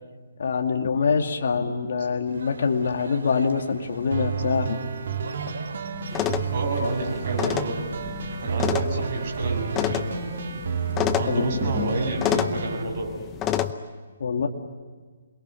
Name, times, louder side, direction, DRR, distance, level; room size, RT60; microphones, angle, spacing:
voice 1, 0.4-4.8 11.3-11.5 14.2-14.5, left 5 dB, 60° left, 3 dB, 2.3 m, -24 dB
sound 1, 2.3-12.1, right 3 dB, 80° right, 4.1 m, -43 dB
sound 2, 4.1-12.8, right 6 dB, 60° right, 2.9 m, -31 dB
sound 3, 6.1-13.7, left 10 dB, 15° left, 0.8 m, -29 dB
voice 2, 6.5-7.8 8.4-10.2 11.1-13.1, right 2 dB, 40° right, 1 dB, 7.6 m, -29 dB
28.0 x 22.0 x 8.4 m, 1.5 s
hypercardioid pair, 170°, 0 cm